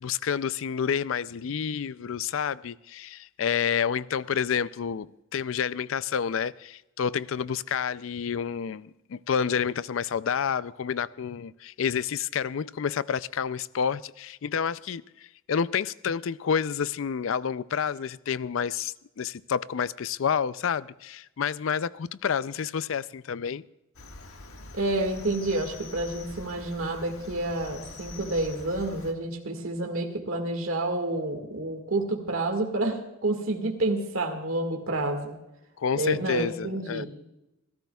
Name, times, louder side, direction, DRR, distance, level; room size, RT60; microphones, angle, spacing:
voice 1, 0.0-23.6 35.8-37.1, left 7 dB, 65° left, 0.4 m, -29 dB
Cricket, 23.9-29.1, left 2 dB, 85° left, 1.7 m, -44 dB
voice 2, 24.7-35.4 35.9-37.1, right 2 dB, 70° right, 1.9 m, -29 dB
28.5 x 13.5 x 2.3 m
head